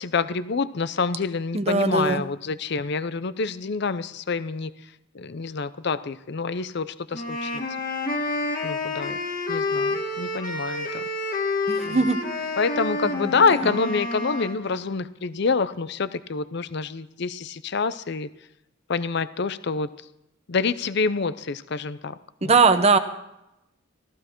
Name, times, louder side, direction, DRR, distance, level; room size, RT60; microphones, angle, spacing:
voice 1, 0.0-4.7 5.1-7.5 8.6-9.2 9.5-10.9 11.8-12.1 12.6-18.3 18.9-19.9 20.5-22.1 22.4-22.5, left 4 dB, 60° left, 15 dB, 0.6 m, -27 dB
voice 2, 1.5-2.2 11.7-12.2 13.2-13.3 22.5-23.0, right 4 dB, 30° right, 9 dB, 0.9 m, -19 dB
sound 1, 7.1-14.6, left 2 dB, 45° left, 1.9 m, -29 dB
14.5 x 14.5 x 4.5 m, 0.87 s
head